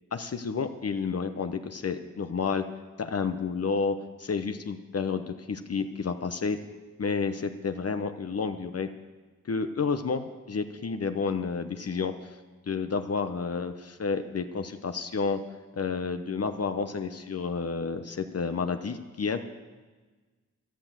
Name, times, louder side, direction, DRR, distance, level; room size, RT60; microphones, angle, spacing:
voice 1, 0.1-2.6 3.0-6.6 7.0-8.9 9.5-12.3 12.7-15.4 15.7-19.4, left 5 dB, 50° left, 7 dB, 0.9 m, -30 dB
11.5 x 10.5 x 7.4 m, 1.3 s
cardioid pair, 55°, 31 cm